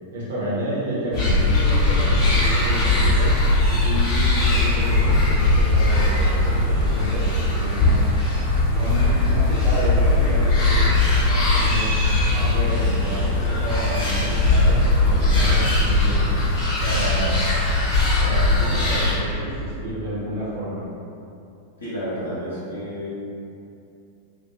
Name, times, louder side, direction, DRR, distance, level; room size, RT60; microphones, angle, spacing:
voice 1, 0.1-3.3 3.7-8.1 8.7-10.9 11.3-12.0 12.3-14.8 15.0-16.4 16.8-17.5 18.2-20.8, equal, 60° right, -8 dB, 0.9 m, -30 dB
sound 1, 1.1-19.1, left 2 dB, 35° left, 0.9 m, -19 dB
voice 2, 21.8-23.1, equal, 70° left, -11 dB, 0.8 m, -30 dB
2.5 x 2.1 x 2.9 m, 2.6 s
figure-of-eight pair, 90°, 0 cm